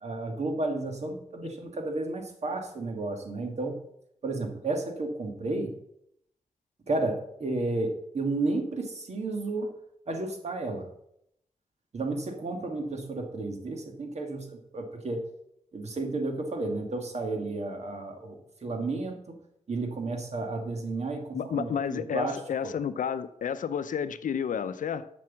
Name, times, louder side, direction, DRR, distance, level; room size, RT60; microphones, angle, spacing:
voice 1, 0.0-3.8 4.2-5.7 6.9-9.8 10.1-10.9 11.9-15.3 15.7-19.4 19.7-22.7, right 2 dB, 55° right, 4 dB, 1.8 m, -32 dB
voice 2, 21.3-25.1, left 7 dB, 85° left, 13 dB, 0.6 m, -31 dB
7.6 x 6.1 x 7.3 m, 0.76 s
wide cardioid pair, 85°, 13 cm